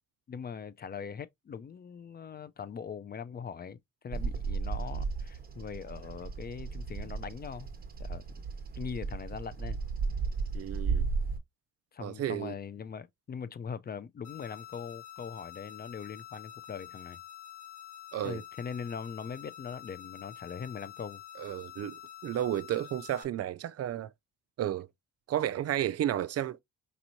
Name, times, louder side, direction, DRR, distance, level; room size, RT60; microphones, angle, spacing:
voice 1, 0.3-3.8 4.0-7.7 8.0-8.2 8.8-9.8 11.9-17.2 18.2-21.2, left 6 dB, 35° left, 0.4 m, -41 dB
Bird vocalization bird call bird song, 4.1-11.4, right 5 dB, 30° right, 1.3 m, -34 dB
voice 2, 10.5-11.1 12.0-12.5 18.1-18.4 21.4-21.9 22.2-24.1 24.6-24.9 25.3-26.6, right 11 dB, 55° right, 0.5 m, -32 dB
sound 1, 14.2-23.2, left 11 dB, 75° left, 1.7 m, -48 dB
5.2 x 3.0 x 2.6 m
cardioid pair, 90°, 30 cm